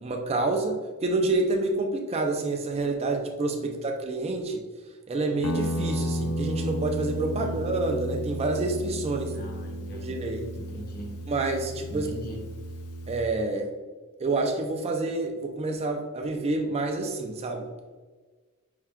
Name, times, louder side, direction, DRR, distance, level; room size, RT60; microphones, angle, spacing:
voice 1, 0.0-4.6 5.1-9.3 9.9-10.5 11.3-12.1 13.1-13.7 14.2-17.7, right 2 dB, 30° right, 3 dB, 0.4 m, -28 dB
Guitar, 5.4-13.3, equal, 75° left, 0.5 m, -33 dB
voice 2, 9.3-10.2 10.5-11.2 11.9-12.4, equal, 45° left, 1 dB, 0.9 m, -40 dB
5.4 x 2.2 x 3.5 m, 1.4 s
head